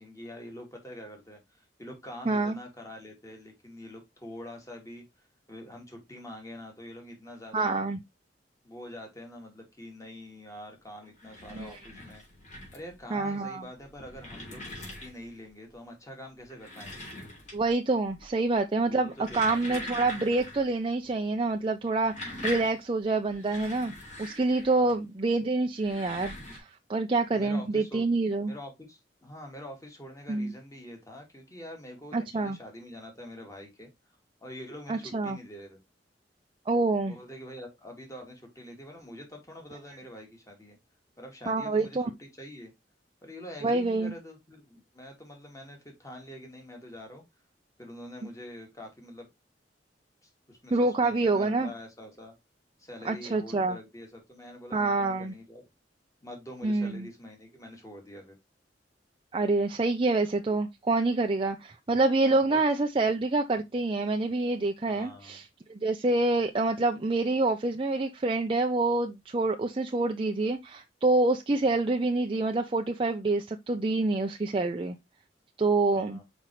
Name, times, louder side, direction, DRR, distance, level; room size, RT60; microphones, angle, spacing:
voice 1, 0.0-5.0 5.5-7.8 8.6-12.2 12.7-14.6 15.0-17.1 18.8-20.1 24.7-25.0 27.3-28.1 28.5-33.9 34.4-35.8 37.0-40.8 41.2-42.7 43.2-47.2 47.8-49.3 50.2-52.3 52.8-55.6 56.2-58.4 62.2-62.6 64.9-65.4 71.6-71.7 75.9-76.2, equal, 20° left, 2.4 m, -45 dB
voice 2, 2.3-2.6 7.5-8.0 11.5-11.7 13.1-13.6 17.5-23.9 24.2-28.5 30.3-30.5 32.1-32.6 34.9-35.4 36.7-37.1 41.5-42.1 43.6-44.1 50.7-51.7 53.0-53.8 54.7-55.3 56.6-57.1 59.3-65.4 65.7-75.0 75.6-76.2, right 3 dB, 30° right, 0.6 m, -27 dB
sound 1, 11.0-13.0 13.7-15.4 16.4-17.8 18.1-18.6 19.0-20.7 21.0-21.1 21.8-24.9 25.7-26.6, left 1 dB, 45° left, 3.6 m, -42 dB
5.9 x 5.1 x 3.1 m
head